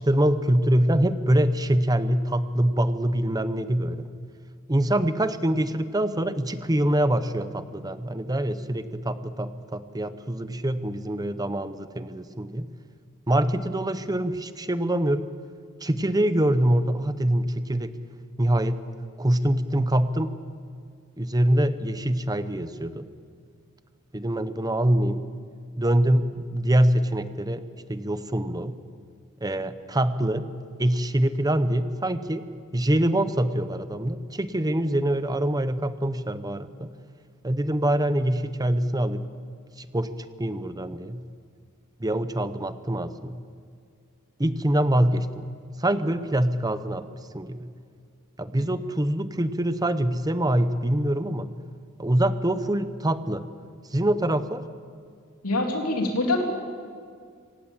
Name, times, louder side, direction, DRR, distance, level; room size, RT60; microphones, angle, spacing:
voice 1, 0.0-4.1 4.7-12.7 13.3-15.2 15.8-18.0 18.4-18.8 19.2-20.3 21.2-23.0 24.1-25.2 25.8-27.6 27.9-28.7 29.4-30.5 30.8-32.5 32.7-36.9 37.4-39.2 39.8-40.1 40.4-41.2 42.0-43.4 44.4-45.5 45.8-47.6 48.4-51.5 52.0-53.4 53.9-54.6, right 1 dB, 15° right, 12 dB, 0.8 m, -24 dB
voice 2, 55.4-56.4, left 2 dB, 80° left, 1 dB, 3.5 m, -24 dB
25.5 x 17.5 x 7.4 m, 2.2 s
head